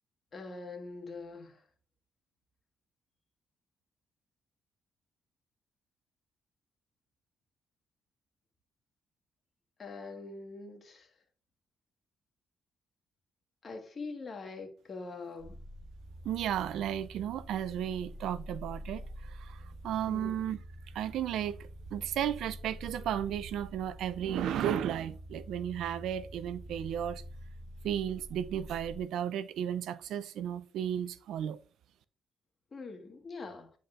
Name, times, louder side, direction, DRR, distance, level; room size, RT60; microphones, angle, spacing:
voice 1, 0.3-1.6 9.8-11.1 13.6-15.6 20.1-20.4 32.7-33.7, left 3 dB, 40° left, 1.5 m, -43 dB
sound 1, 15.4-29.0, equal, 25° right, 2.7 m, -47 dB
voice 2, 16.2-20.6 20.9-27.2 27.8-31.6, right 10 dB, 80° right, 0.4 m, -34 dB
9.7 x 4.1 x 2.5 m
cardioid pair, 90°, 0 cm